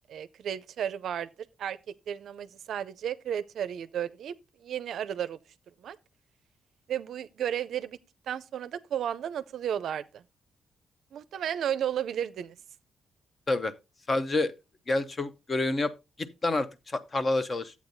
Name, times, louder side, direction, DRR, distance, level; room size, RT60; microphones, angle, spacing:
voice 1, 0.1-1.8 2.1-4.3 4.6-5.4 5.8-6.0 6.9-8.0 8.3-10.2 11.1-12.6, right 9 dB, 75° right, 0.4 m, -33 dB
voice 2, 14.1-14.5 14.9-15.9 16.2-17.8, left 2 dB, 30° left, 0.7 m, -28 dB
11.5 x 8.3 x 2.6 m
cardioid pair, 130°, 0 cm